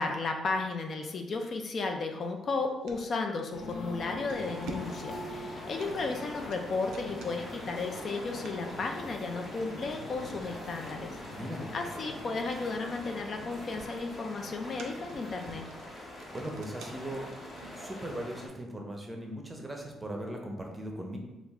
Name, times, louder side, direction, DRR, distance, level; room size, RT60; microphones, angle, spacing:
voice 1, 0.0-11.2 11.7-15.7, left 3 dB, 50° left, 4 dB, 0.4 m, -34 dB
sound 1, 1.5-3.1 3.7-3.9 4.3-18.3, right 4 dB, 90° right, 0.4 m, -52 dB
sound 2, 3.5-18.2, left 2 dB, 90° left, 0.7 m, -44 dB
sound 3, 4.3-18.5, left 1 dB, 35° left, 1.0 m, -45 dB
voice 2, 11.3-11.6 16.3-17.2 17.7-21.2, right 1 dB, 15° right, 1 dB, 0.6 m, -38 dB
3.0 x 2.4 x 3.5 m, 1.0 s
cardioid pair, 90°, 0 cm